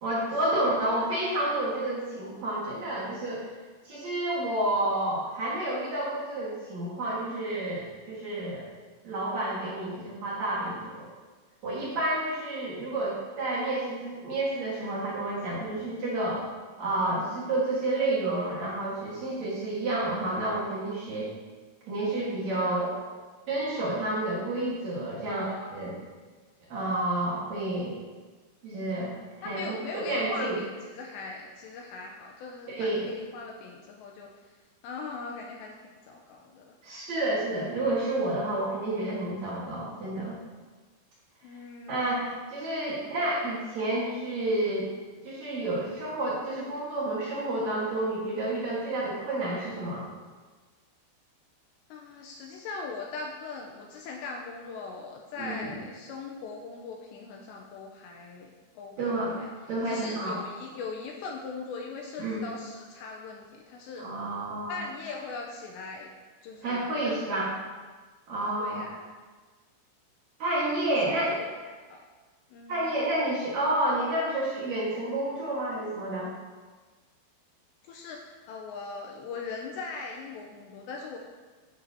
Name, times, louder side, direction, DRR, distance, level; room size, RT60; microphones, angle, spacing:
voice 1, 0.0-3.5 3.8-8.6 9.0-11.1 11.6-16.4 16.8-21.3 21.9-22.9 23.5-25.9 26.7-28.0 28.6-29.1 29.4-30.6 32.7-33.0 36.8-40.4 41.9-44.9 45.2-50.1 55.4-55.7 59.0-59.4 59.7-60.4 62.2-62.4 64.0-64.8 66.6-67.5 68.3-68.8 70.4-71.3 72.7-76.3, right 1 dB, 60° right, -6 dB, 1.9 m, -30 dB
voice 2, 0.5-1.0 22.6-23.0 25.3-25.9 29.4-34.3 34.8-36.7 41.4-42.4 51.9-58.5 58.8-59.5 59.9-64.0 64.7-66.1 66.4-67.2 68.6-69.1 71.1-72.0 72.5-72.9 77.9-81.2, left 4 dB, 85° left, 0 dB, 2.6 m, -40 dB
9.8 x 9.4 x 2.8 m, 1.4 s
omnidirectional pair, 5.6 m